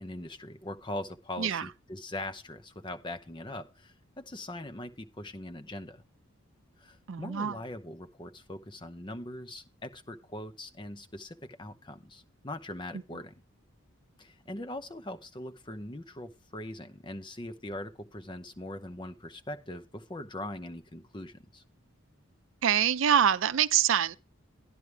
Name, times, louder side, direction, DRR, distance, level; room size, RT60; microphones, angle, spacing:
voice 1, 0.0-6.0 6.8-13.4 14.2-21.6, left 1 dB, 20° left, 0.7 m, -41 dB
voice 2, 7.1-7.5 22.6-24.2, right 9 dB, 65° right, 0.4 m, -25 dB
11.0 x 11.0 x 3.3 m
head